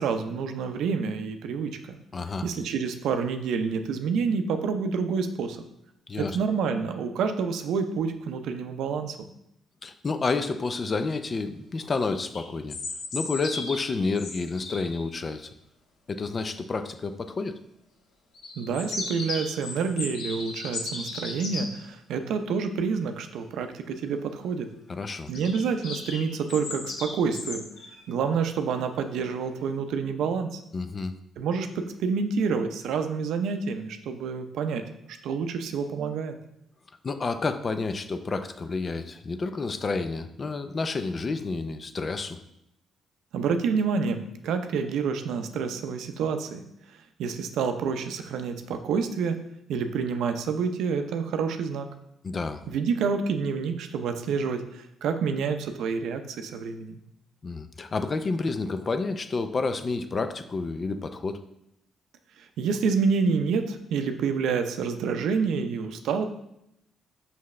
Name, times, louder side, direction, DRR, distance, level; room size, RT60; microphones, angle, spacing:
voice 1, 0.0-2.0 2.4-5.6 6.2-9.2 18.6-24.7 25.3-27.6 28.1-30.6 31.4-34.8 35.2-36.4 43.3-46.6 47.2-49.4 49.7-51.9 52.7-57.0 62.6-66.2, right 5 dB, 80° right, 7 dB, 0.6 m, -28 dB
voice 2, 2.1-2.5 6.1-6.4 9.8-12.8 13.1-15.5 16.1-17.6 24.9-25.3 30.7-31.1 37.0-42.4 52.2-52.6 57.4-61.4, left 3 dB, 35° left, 9 dB, 0.5 m, -30 dB
sound 1, 12.1-15.0 18.3-21.6 25.3-28.0, left 3 dB, 85° left, 1.5 m, -36 dB
5.9 x 5.7 x 3.2 m, 0.80 s
cardioid pair, 90°, 0 cm